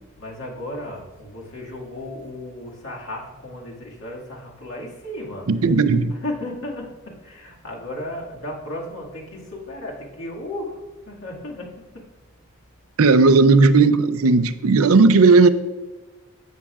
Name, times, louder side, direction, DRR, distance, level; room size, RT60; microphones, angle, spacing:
voice 1, 0.2-5.5 6.1-12.1, left 1 dB, 65° left, 2.0 m, -34 dB
voice 2, 5.5-6.1 13.0-15.5, right 4 dB, 90° right, 0.6 m, -15 dB
16.0 x 6.4 x 2.4 m
head